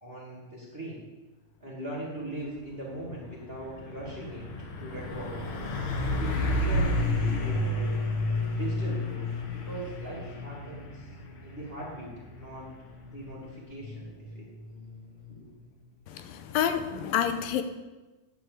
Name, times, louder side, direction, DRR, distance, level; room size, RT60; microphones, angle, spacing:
voice 1, 0.0-1.1 1.6-4.5 4.8-5.4 5.9-7.9 8.5-11.1 11.4-12.7 13.1-14.5 15.3-15.5, right 1 dB, 20° right, -6 dB, 1.8 m, -40 dB
Truck, 2.4-2.7 3.0-15.6, left 1 dB, 65° left, 1.3 m, -32 dB
voice 2, 16.1-17.6, left 9 dB, 85° left, 9 dB, 2.5 m, -28 dB
10.0 x 5.2 x 7.9 m, 1.2 s
omnidirectional pair, 4.0 m